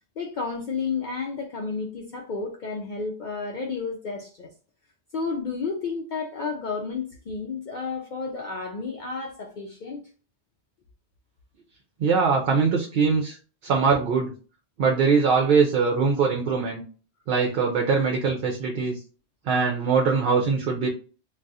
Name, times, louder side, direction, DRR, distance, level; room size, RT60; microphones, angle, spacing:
voice 1, 0.2-4.5 5.1-10.0, left 4 dB, 55° left, 0.6 m, -31 dB
voice 2, 12.0-13.4 13.6-14.3 14.8-16.8 17.3-19.0 19.5-20.9, right 5 dB, 65° right, 0.7 m, -22 dB
2.4 x 2.3 x 3.9 m
omnidirectional pair, 1.1 m